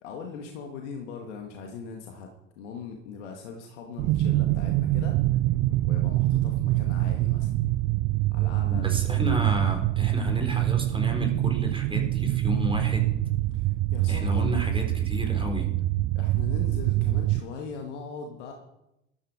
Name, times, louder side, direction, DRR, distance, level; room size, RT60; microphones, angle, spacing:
voice 1, 0.0-5.2 5.8-7.5 8.3-8.9 13.5-14.7 16.1-18.5, left 5 dB, 70° left, 2 dB, 1.8 m, -40 dB
sound 1, 4.0-17.4, right 16 dB, 50° right, 0.6 m, -25 dB
voice 2, 8.7-13.1 14.1-15.7, equal, 15° right, 3 dB, 4.6 m, -30 dB
13.5 x 13.5 x 4.9 m, 0.88 s
figure-of-eight pair, 60°, 37 cm